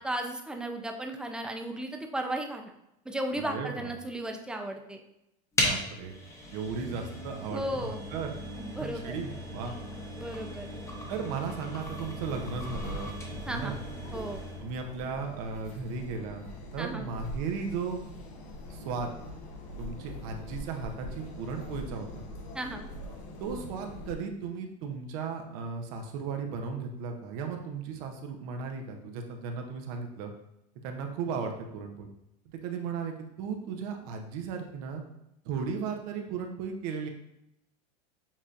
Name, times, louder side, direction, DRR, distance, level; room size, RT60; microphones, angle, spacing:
voice 1, 0.0-2.7 3.1-5.0 7.5-8.0 8.6-9.1 10.2-10.7 13.5-13.8 14.1-14.4 16.8-17.1 22.5-22.8, right 1 dB, 5° right, 3 dB, 0.4 m, -35 dB
voice 2, 3.3-3.9 5.6-6.1 6.5-8.4 8.7-9.7 11.1-13.7 14.6-16.5 16.7-18.0 18.7-19.2 19.8-22.3 23.4-30.3 30.8-32.1 32.6-35.0 35.4-37.1, right 5 dB, 65° right, 3 dB, 0.7 m, -36 dB
sound 1, 5.5-14.7, left 1 dB, 15° left, 0.8 m, -37 dB
sound 2, 11.8-24.1, equal, 65° left, 1.0 m, -43 dB
7.2 x 2.7 x 2.5 m, 0.84 s
supercardioid pair, 135°, 21 cm